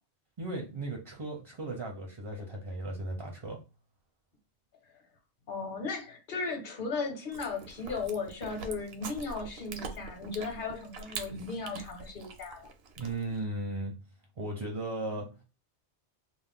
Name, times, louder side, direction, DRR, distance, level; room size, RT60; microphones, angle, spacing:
voice 1, 0.4-3.6 13.0-14.0 14.4-15.4, right 2 dB, 40° right, 0 dB, 0.5 m, -36 dB
voice 2, 5.5-12.7, left 4 dB, 55° left, 3 dB, 0.9 m, -36 dB
Chewing mastication, 7.3-13.4, right 4 dB, 70° right, 0.8 m, -44 dB
2.4 x 2.0 x 3.5 m, 0.30 s
omnidirectional pair, 1.1 m